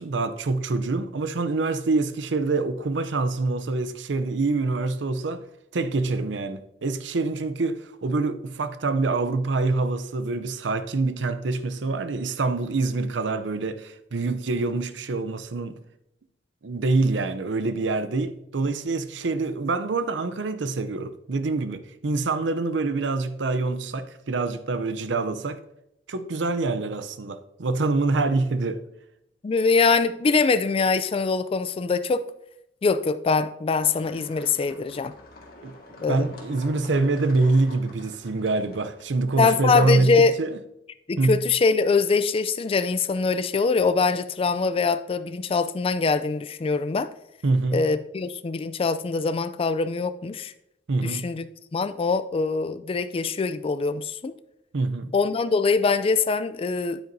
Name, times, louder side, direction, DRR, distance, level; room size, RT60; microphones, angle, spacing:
voice 1, 0.0-5.4 5.7-15.8 16.6-25.6 26.1-28.8 35.6-35.8 36.1-40.6 41.2-41.4 47.4-47.8 50.9-51.3 54.7-55.1, right 3 dB, 70° right, 0.6 m, -25 dB
voice 2, 29.4-32.2 32.8-35.1 36.0-36.3 39.4-40.3 41.1-47.1 47.7-50.5 51.0-54.3 55.1-57.0, left 4 dB, 30° left, 0.3 m, -23 dB
sound 1, 33.8-39.3, left 2 dB, 55° left, 1.8 m, -47 dB
9.3 x 8.6 x 2.7 m
head